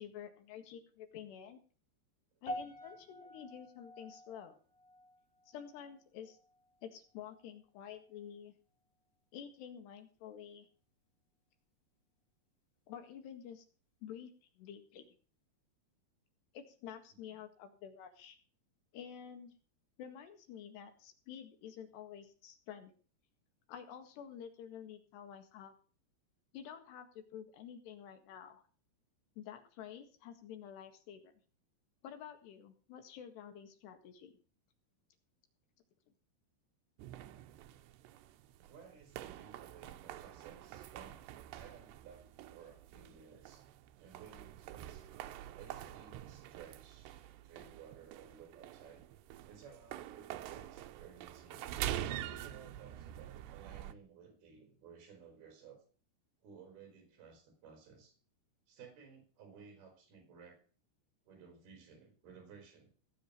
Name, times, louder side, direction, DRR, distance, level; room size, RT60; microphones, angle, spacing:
voice 1, 0.0-1.6 2.4-4.6 5.5-6.4 6.8-8.5 9.3-10.7 12.9-13.7 14.0-15.1 16.5-18.4 18.9-19.6 20.0-22.9 23.7-25.7 26.5-28.6 29.4-31.3 32.0-34.4, left 8 dB, 80° left, 7 dB, 4.0 m, -50 dB
sound 1, 2.5-6.8 7.1-7.5 8.1-8.2, equal, 65° left, 0.9 m, -49 dB
sound 2, 37.0-53.9, right 12 dB, 85° right, 3.1 m, -46 dB
voice 2, 38.7-41.2 41.5-43.7 44.0-45.1 45.6-47.1 47.4-49.0 49.4-51.8 52.2-55.8 56.4-58.1 58.7-60.6 61.3-62.9, right 6 dB, 65° right, 4 dB, 5.9 m, -57 dB
17.0 x 7.8 x 6.7 m, 0.40 s
omnidirectional pair, 4.8 m